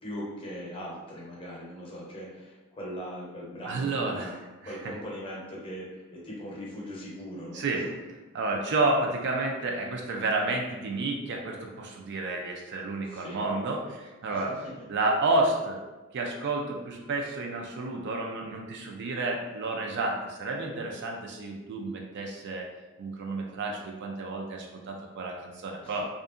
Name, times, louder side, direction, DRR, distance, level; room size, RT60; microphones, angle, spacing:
voice 1, 0.0-4.3 4.6-7.7 13.1-13.5 14.3-14.8 25.8-26.0, equal, 25° left, -5 dB, 0.7 m, -40 dB
voice 2, 3.6-4.9 7.5-7.9 8.3-14.6 14.9-15.8 16.1-22.7 23.0-26.0, right 2 dB, 55° right, 1 dB, 0.4 m, -30 dB
2.6 x 2.4 x 2.4 m, 1.1 s
head